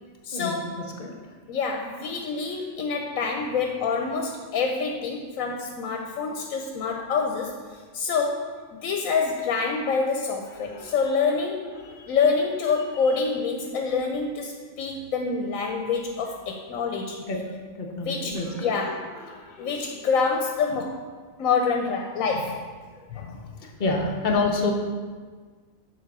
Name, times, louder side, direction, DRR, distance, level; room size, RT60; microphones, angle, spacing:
voice 1, 0.2-0.8 1.5-11.7 12.1-17.2 18.0-19.1 19.6-21.0 21.4-22.7 23.1-23.5, left 5 dB, 85° left, 3 dB, 1.0 m, -27 dB
voice 2, 10.6-10.9 11.8-12.2 17.3-17.4 17.8-18.9 19.3-19.7 23.1-23.2 23.6-24.7, left 3 dB, 40° left, 0 dB, 0.9 m, -28 dB
7.2 x 3.8 x 4.7 m, 1.5 s
omnidirectional pair, 1.4 m